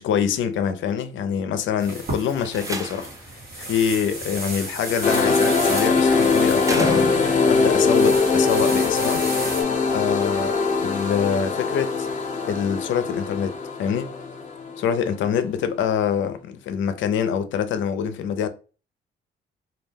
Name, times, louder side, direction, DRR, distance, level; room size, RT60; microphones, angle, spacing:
voice 1, 0.0-7.1 7.5-9.2 9.9-12.1 12.4-14.1 14.8-18.5, left 7 dB, 75° left, 0.5 m, -25 dB
sound 1, 1.8-9.6, right 2 dB, 50° right, 1.2 m, -34 dB
Slam, 2.3-3.3 4.8-5.3 6.6-7.6, right 3 dB, 15° right, 0.5 m, -31 dB
sound 2, 5.0-15.3, left 4 dB, 40° left, 0.7 m, -22 dB
2.3 x 2.1 x 3.3 m
cardioid pair, 90°, 20 cm